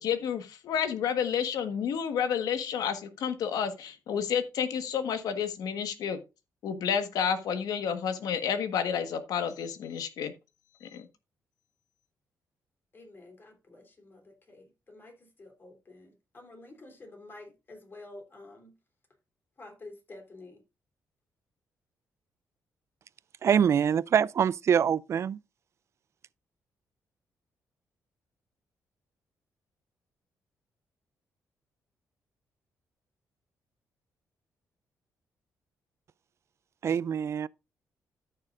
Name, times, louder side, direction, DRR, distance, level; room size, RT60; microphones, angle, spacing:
voice 1, 0.0-6.2 6.6-10.3 10.8-11.0, left 7 dB, 80° left, 1.4 m, -30 dB
voice 2, 12.9-18.8 19.6-20.6, left 2 dB, 35° left, 3.4 m, -50 dB
voice 3, 23.4-25.4 36.8-37.5, right 8 dB, 45° right, 0.4 m, -24 dB
13.5 x 6.6 x 2.5 m
cardioid pair, 120°, 6 cm